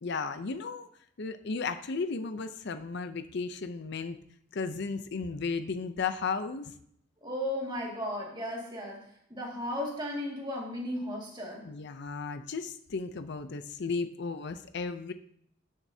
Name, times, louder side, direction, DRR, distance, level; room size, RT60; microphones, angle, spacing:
voice 1, 0.0-0.9 1.2-4.2 4.5-6.7 11.6-15.1, left 4 dB, 60° left, 10 dB, 0.5 m, -34 dB
voice 2, 7.2-11.7, left 1 dB, 25° right, -2 dB, 2.1 m, -35 dB
12.0 x 7.4 x 2.8 m, 0.67 s
head